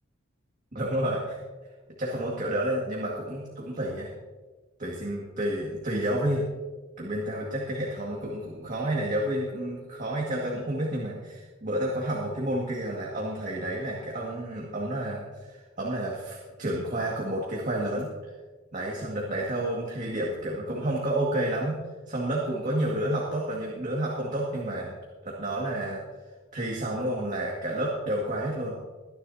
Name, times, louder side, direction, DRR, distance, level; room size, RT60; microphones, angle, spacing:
voice 1, 0.7-1.4 2.0-4.1 4.8-6.5 7.0-18.1 18.7-21.8 22.1-25.0 25.2-26.0 26.5-28.8, right 1 dB, 40° right, -3 dB, 2.0 m, -30 dB
23.0 x 10.5 x 2.8 m, 1.3 s
head